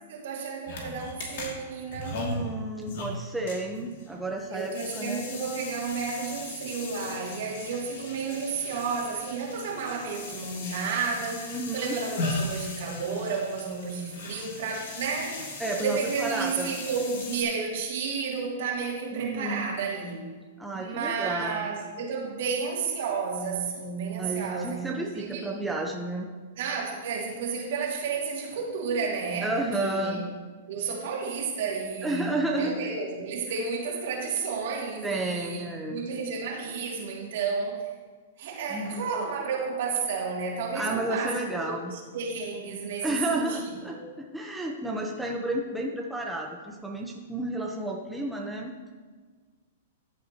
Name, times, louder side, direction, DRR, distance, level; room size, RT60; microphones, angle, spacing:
voice 1, 0.1-2.2 4.5-15.4 15.8-20.2 20.7-25.5 26.6-30.2 30.7-32.2 32.5-37.9 38.4-43.6 43.9-44.1, right 5 dB, 65° right, -2 dB, 2.6 m, -32 dB
sound 1, 0.7-17.4, left 2 dB, 65° left, 2.4 m, -38 dB
voice 2, 2.1-5.3 11.5-12.0 15.6-16.7 19.1-19.8 20.6-21.7 24.2-26.3 29.4-30.3 32.0-32.7 35.0-36.1 38.7-39.0 40.7-41.9 43.0-48.8, right 2 dB, 5° right, -1 dB, 0.9 m, -31 dB
14.0 x 7.5 x 3.0 m, 1.5 s
hypercardioid pair, 130°, 0 cm